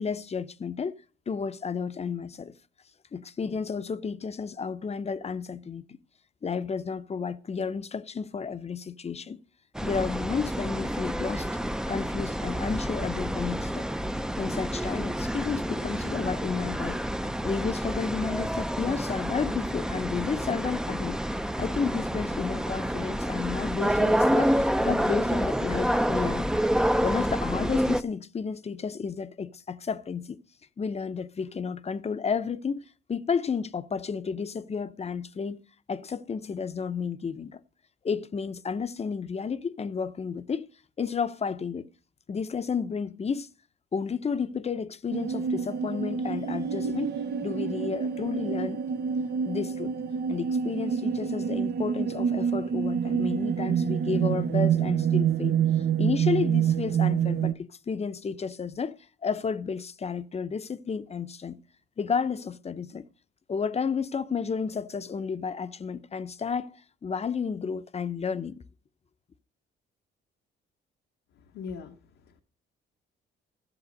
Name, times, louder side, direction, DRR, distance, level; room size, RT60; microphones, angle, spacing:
voice 1, 0.0-2.6 3.1-6.0 6.4-9.4 9.8-11.5 11.9-13.9 14.4-17.0 17.4-21.2 21.6-26.5 27.0-30.4 30.8-35.6 35.9-37.6 38.0-40.7 41.0-41.9 42.3-43.5 43.9-47.1 47.4-48.8 49.4-50.0 50.3-61.6 62.0-63.0 63.5-68.6, left 5 dB, 30° left, 0.7 m, -32 dB
sound 1, 9.7-28.0, equal, 5° right, 0.6 m, -28 dB
sound 2, 45.1-57.5, right 8 dB, 55° right, 0.8 m, -27 dB
voice 2, 71.3-72.4, left 5 dB, 85° left, 1.1 m, -42 dB
14.0 x 7.4 x 5.2 m
cardioid pair, 90°, 20 cm